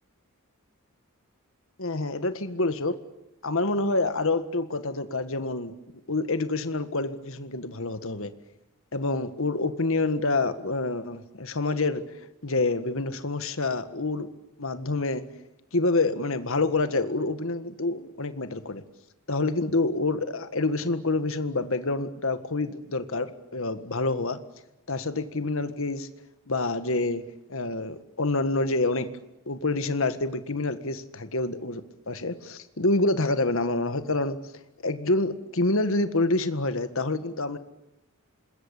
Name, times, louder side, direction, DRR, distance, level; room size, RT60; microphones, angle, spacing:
voice 1, 1.8-3.0 3.4-5.7 6.1-8.3 8.9-12.0 12.4-14.3 14.6-15.2 15.7-18.8 19.3-24.4 24.9-26.1 26.5-27.2 27.5-29.1 29.5-34.4 34.8-37.6, left 2 dB, 65° left, 10 dB, 1.7 m, -27 dB
26.5 x 21.0 x 8.9 m, 0.90 s
head